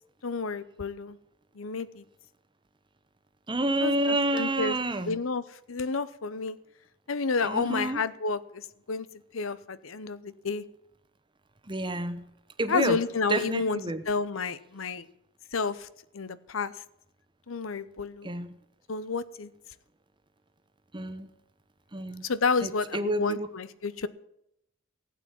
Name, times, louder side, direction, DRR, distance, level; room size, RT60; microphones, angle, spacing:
voice 1, 0.2-1.2 1.5-2.0 3.8-4.8 5.1-6.6 7.1-9.1 9.3-10.6 12.7-13.8 14.1-15.0 15.5-15.9 16.1-16.7 17.5-18.3 18.9-19.5 22.2-24.1, left 4 dB, 85° left, 16 dB, 0.8 m, -30 dB
voice 2, 3.5-5.2 7.4-8.0 11.7-12.2 12.6-13.0 13.3-14.0 18.2-18.6 20.9-21.3 21.9-22.2 22.6-23.5, right 1 dB, 25° right, 10 dB, 1.1 m, -29 dB
16.0 x 8.5 x 7.3 m, 0.78 s
head